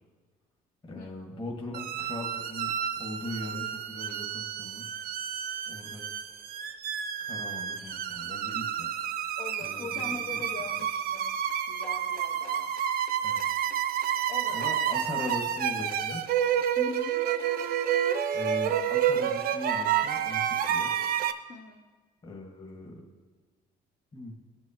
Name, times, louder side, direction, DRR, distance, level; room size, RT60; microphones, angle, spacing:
voice 1, 0.8-2.7 3.0-4.9 5.7-6.0 7.2-8.9 9.6-10.2 13.2-13.4 14.5-16.2 18.3-21.0 22.2-22.9 24.1-24.3, left 1 dB, 30° left, -1 dB, 1.5 m, -39 dB
sound 1, 1.7-21.3, right 9 dB, 65° right, 0.6 m, -30 dB
voice 2, 9.4-11.4 11.7-12.8 14.3-14.7 15.2-15.3 16.8-17.2 21.5-21.8, left 4 dB, 65° left, 0 dB, 0.8 m, -41 dB
16.0 x 6.2 x 3.0 m, 1.4 s
cardioid pair, 110°, 17 cm